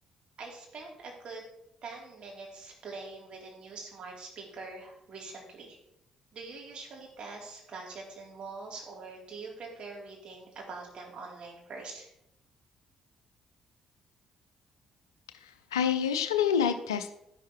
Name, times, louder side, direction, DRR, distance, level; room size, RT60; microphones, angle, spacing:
voice 1, 0.4-1.4 1.8-5.8 6.3-12.1, right 3 dB, 45° right, -1 dB, 3.2 m, -44 dB
voice 2, 15.4-17.1, left 8 dB, 75° left, 10 dB, 0.5 m, -27 dB
11.5 x 11.0 x 3.1 m, 0.80 s
figure-of-eight pair, 40°, 2 cm